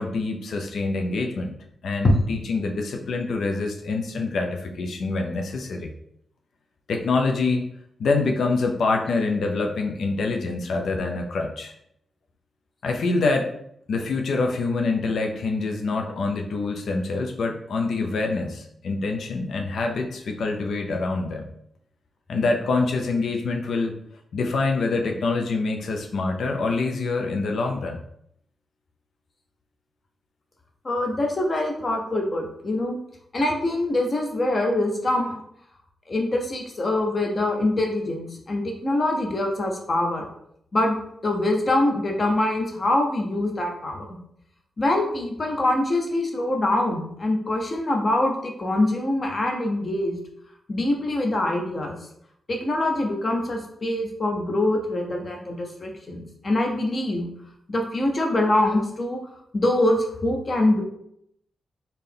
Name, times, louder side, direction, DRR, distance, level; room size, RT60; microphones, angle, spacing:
voice 1, 0.0-1.5 1.8-5.9 6.9-7.6 8.0-11.7 12.8-13.5 13.9-21.5 22.3-24.0 24.3-28.0, left 3 dB, 70° left, 3 dB, 0.6 m, -25 dB
voice 2, 30.8-33.0 33.3-35.4 36.1-40.3 40.7-44.1 44.8-50.2 50.7-52.0 52.5-57.3 57.7-59.2 59.5-60.8, left 1 dB, 35° left, 1 dB, 0.7 m, -24 dB
4.2 x 2.8 x 3.4 m, 0.73 s
wide cardioid pair, 140°, 0 cm